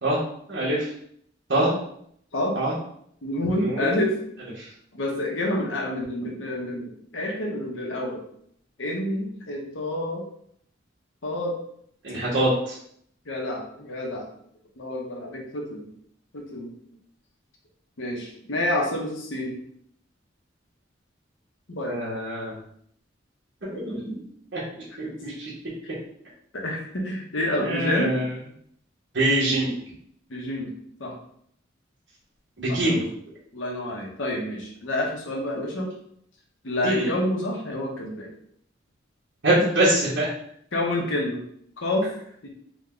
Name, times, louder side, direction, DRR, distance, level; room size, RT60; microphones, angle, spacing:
voice 1, 0.5-0.9 1.5-1.7 2.5-2.7 3.6-3.9 12.0-12.7 21.8-22.6 23.7-24.1 24.5-24.6 25.0-25.5 27.6-28.2 29.1-29.7 32.6-33.0 36.8-37.1 39.4-40.3, right 1 dB, 70° right, -8 dB, 1.2 m, -24 dB
voice 2, 3.2-4.2 4.9-8.2 8.8-10.3 11.2-11.6 13.2-14.2 14.8-15.9 16.3-16.7 18.0-19.6 21.7-22.0 25.8-25.9 26.5-28.2 30.3-30.7 31.0-31.1 32.7-33.1 33.5-35.9 36.6-38.3 40.7-41.4 41.8-42.1 42.4-42.5, left 1 dB, 85° left, -1 dB, 1.0 m, -28 dB
3.6 x 2.3 x 3.7 m, 0.66 s
head